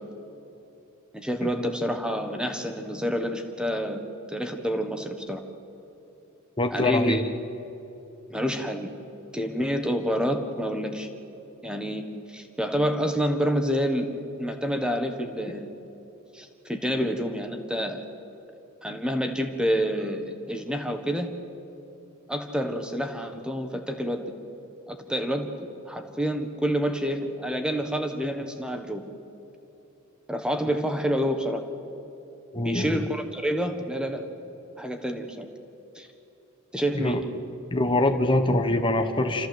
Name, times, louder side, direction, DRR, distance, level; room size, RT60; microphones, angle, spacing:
voice 1, 1.1-4.0 4.3-5.4 6.7-7.2 8.3-8.9 9.3-11.1 11.6-14.1 14.4-15.7 16.3-18.0 18.8-21.3 22.3-24.3 24.9-29.0 30.3-31.6 32.6-34.2 34.8-35.5 35.9-36.1 36.7-37.2, equal, 5° right, 6 dB, 1.5 m, -28 dB
voice 2, 6.6-7.2 32.5-33.0 36.9-37.2 37.7-39.5, left 1 dB, 25° left, 5 dB, 1.1 m, -24 dB
28.0 x 14.0 x 8.0 m, 2.9 s
head